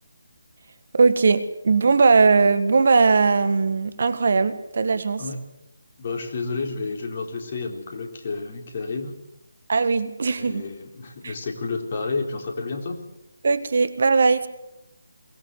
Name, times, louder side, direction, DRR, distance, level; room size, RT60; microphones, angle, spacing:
voice 1, 0.9-5.2 9.7-10.7 11.2-11.3 13.4-14.5, right 4 dB, 55° right, 12 dB, 1.6 m, -19 dB
voice 2, 6.0-9.1 10.4-13.0, left 4 dB, 40° left, 3 dB, 3.8 m, -30 dB
23.0 x 19.0 x 8.1 m, 0.89 s
figure-of-eight pair, 150°, 0 cm